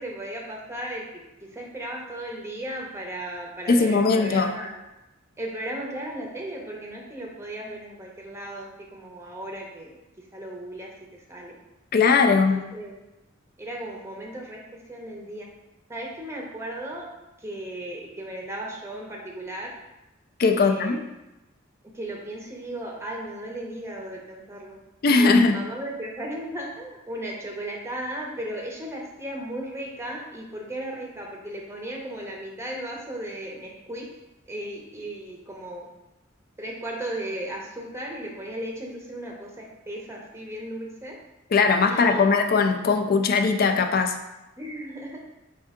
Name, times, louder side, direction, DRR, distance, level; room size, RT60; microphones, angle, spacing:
voice 1, 0.0-4.8 5.4-11.5 12.3-12.9 13.6-15.5 15.9-17.1 17.4-19.7 20.5-21.1 21.9-24.8 25.2-34.1 34.5-35.9 36.6-41.2 41.9-42.4 44.6-45.2, right 1 dB, 15° right, -1 dB, 0.7 m, -36 dB
voice 2, 3.7-4.5 11.9-12.6 20.4-21.0 25.0-25.6 41.5-44.1, left 4 dB, 50° left, 5 dB, 0.4 m, -20 dB
5.3 x 2.7 x 3.6 m, 0.97 s
head